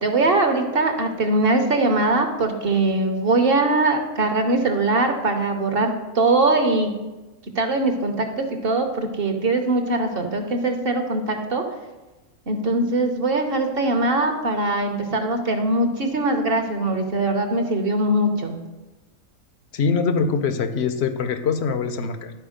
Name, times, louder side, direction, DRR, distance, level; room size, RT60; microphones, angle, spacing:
voice 1, 0.0-6.9 7.5-11.6 12.5-18.6, right 2 dB, 45° right, 5 dB, 1.0 m, -21 dB
voice 2, 19.7-22.3, left 5 dB, 55° left, 9 dB, 0.8 m, -23 dB
11.5 x 4.6 x 5.0 m, 1.1 s
omnidirectional pair, 1.5 m